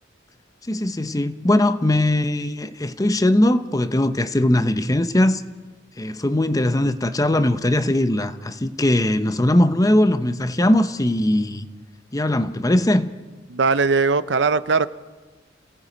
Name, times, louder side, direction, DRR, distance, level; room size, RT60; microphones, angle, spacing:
voice 1, 0.6-5.4 6.0-11.7 12.1-13.1, left 1 dB, 20° left, 0.7 m, -20 dB
voice 2, 13.5-14.9, right 4 dB, 65° right, 0.6 m, -19 dB
29.0 x 17.5 x 5.1 m
head